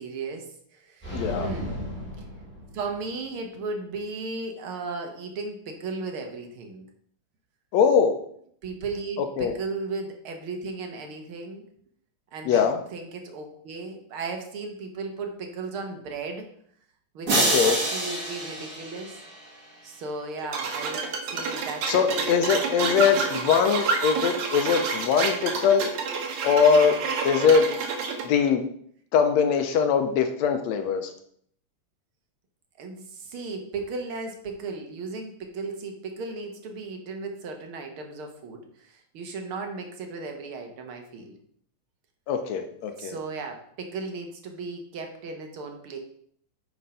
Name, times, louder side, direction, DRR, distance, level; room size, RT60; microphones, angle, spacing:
voice 1, 0.0-1.9 2.2-2.3 2.7-6.9 8.6-11.6 12.3-12.6 12.9-16.5 17.1-19.2 19.8-23.2 32.8-41.3 43.0-46.0, right 3 dB, 55° right, 4 dB, 1.7 m, -36 dB
sound 1, 1.0-3.2, equal, 5° left, 2.5 m, -35 dB
voice 2, 1.1-1.5 7.7-8.2 9.4-9.5 12.5-12.8 17.5-17.8 21.9-25.9 26.4-27.0 27.2-27.7 28.2-28.6 29.1-31.1 42.3-43.2, left 6 dB, 75° left, 6 dB, 1.9 m, -22 dB
sound 2, 17.3-19.6, right 2 dB, 40° right, 1.8 m, -27 dB
sound 3, 20.5-28.3, right 5 dB, 75° right, 2.5 m, -29 dB
9.3 x 4.5 x 5.6 m, 0.64 s
omnidirectional pair, 3.4 m